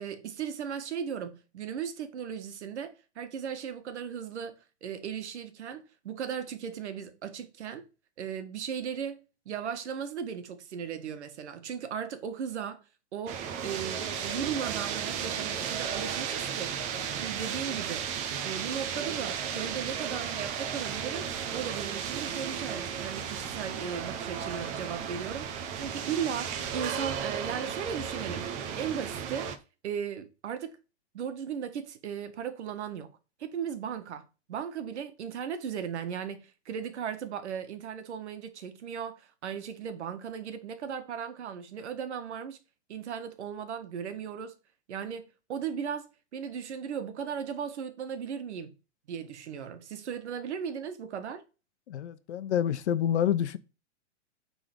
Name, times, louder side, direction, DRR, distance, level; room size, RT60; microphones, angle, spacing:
voice 1, 0.0-7.9 8.2-12.8 13.1-16.8 17.1-18.1 18.4-28.5 28.8-29.5 29.8-30.8 31.1-33.1 33.4-42.6 42.9-44.5 44.9-48.7 49.1-51.4, right 7 dB, 70° right, 1.7 m, -37 dB
sound 1, 13.3-29.6, right 7 dB, 20° right, 0.8 m, -34 dB
voice 2, 51.9-53.6, left 10 dB, 65° left, 1.1 m, -28 dB
8.9 x 3.9 x 5.4 m
hypercardioid pair, 165°, 36 cm